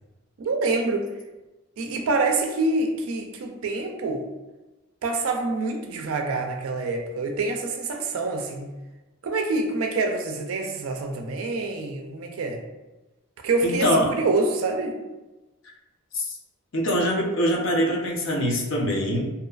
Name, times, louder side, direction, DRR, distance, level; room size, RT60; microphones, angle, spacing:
voice 1, 0.4-1.1 1.8-4.2 5.0-8.7 9.2-12.6 13.4-15.0, right 3 dB, 75° right, 3 dB, 0.4 m, -26 dB
voice 2, 13.6-14.1 16.1-16.4 16.7-19.3, equal, 60° left, 0 dB, 0.5 m, -23 dB
2.7 x 2.3 x 2.3 m, 1.1 s
head